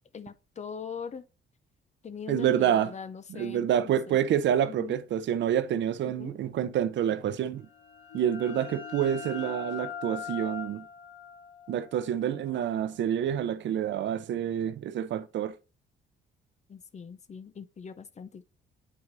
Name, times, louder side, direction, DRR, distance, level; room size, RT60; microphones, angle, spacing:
voice 1, 0.1-1.3 2.0-4.2 4.6-5.0 6.0-6.4 16.7-18.4, left 6 dB, 35° left, 0.6 m, -42 dB
voice 2, 2.3-2.9 3.4-7.7 8.1-10.8 11.7-15.6, right 10 dB, 70° right, 0.7 m, -28 dB
sound 1, 7.6-13.1, left 7 dB, 85° left, 3.1 m, -42 dB
8.8 x 4.7 x 2.6 m
cardioid pair, 90°, 20 cm